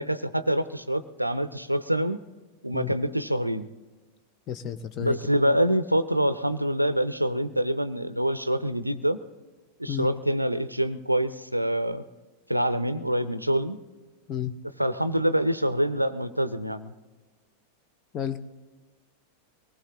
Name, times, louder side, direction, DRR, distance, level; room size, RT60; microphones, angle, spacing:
voice 1, 0.0-2.2 2.6-3.7 5.0-9.2 9.8-12.0 12.5-13.8 14.8-16.9, equal, 90° right, 14 dB, 0.5 m, -26 dB
voice 2, 4.5-5.2 9.9-10.1 14.3-14.5 18.1-18.4, left 10 dB, 35° left, 11 dB, 0.6 m, -31 dB
24.0 x 19.0 x 2.9 m, 1.3 s
figure-of-eight pair, 90°, 0 cm